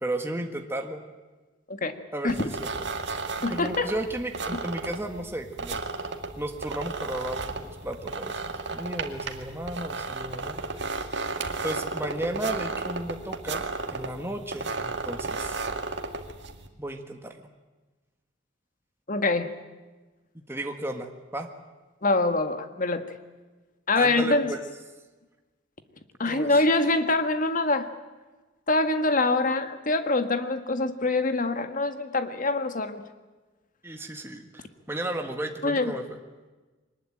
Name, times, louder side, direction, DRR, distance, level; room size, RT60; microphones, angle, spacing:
voice 1, 0.0-1.0 2.1-2.7 3.5-5.8 6.4-10.6 11.6-13.6 13.9-15.6 16.8-17.5 20.3-21.5 24.0-24.6 26.2-26.6 33.8-36.2, right 1 dB, 15° right, 4 dB, 1.6 m, -34 dB
sound 1, 2.3-16.7, right 3 dB, 65° right, 2.1 m, -34 dB
voice 2, 3.4-3.9 4.5-4.6 19.1-19.5 22.0-23.0 23.9-24.5 26.2-27.9 28.7-33.0 35.6-35.9, left 2 dB, 45° left, 8 dB, 1.7 m, -24 dB
23.0 x 20.0 x 8.9 m, 1.2 s
head